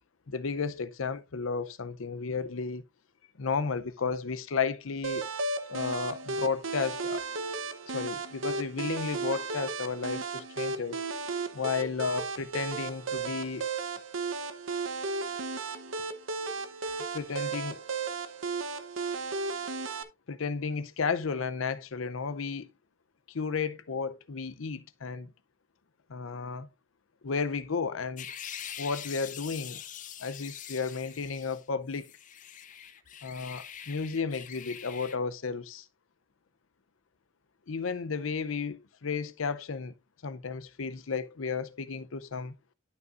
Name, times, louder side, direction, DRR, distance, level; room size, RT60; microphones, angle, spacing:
voice 1, 0.3-2.8 3.4-5.3 5.7-7.3 7.9-11.0 11.5-13.7 17.1-17.8 20.3-22.7 23.3-25.3 26.1-26.7 27.2-28.3 28.8-29.8 30.2-32.1 33.2-35.8 37.7-39.9 40.2-42.5, left 5 dB, 90° left, 0.7 m, -33 dB
sound 1, 5.0-20.0, right 4 dB, 85° right, 0.9 m, -34 dB
sound 2, 28.2-31.6 31.9-35.2, left 9 dB, 40° left, 0.6 m, -44 dB
11.5 x 5.5 x 2.5 m
head